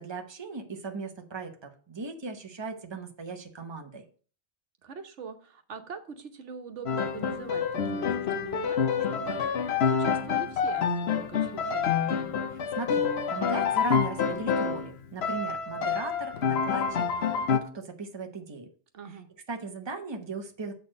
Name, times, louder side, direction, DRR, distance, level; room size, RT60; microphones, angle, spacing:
voice 1, 0.0-4.0 12.8-18.7 19.5-20.7, right 3 dB, 25° right, 4 dB, 1.0 m, -38 dB
voice 2, 4.8-11.9 18.9-19.3, right 5 dB, 85° right, 7 dB, 1.3 m, -43 dB
Piano, 6.9-14.9 15.2-17.6, left 6 dB, 70° left, 1.1 m, -27 dB
7.8 x 4.2 x 6.4 m, 0.42 s
omnidirectional pair, 1.2 m